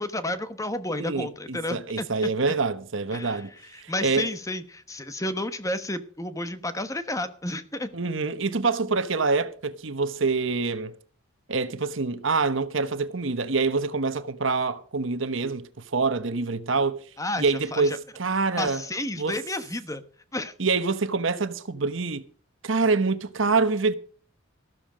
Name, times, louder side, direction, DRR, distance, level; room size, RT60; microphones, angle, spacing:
voice 1, 0.0-2.3 3.1-7.9 17.2-18.0 18.6-20.0 20.3-20.5, left 1 dB, 15° left, 1.1 m, -31 dB
voice 2, 1.0-3.5 3.8-4.3 7.9-10.9 11.5-17.0 17.4-18.8 19.2-19.4 20.6-22.2 22.6-23.9, right 4 dB, 65° right, 1.1 m, -26 dB
14.0 x 13.0 x 5.1 m
head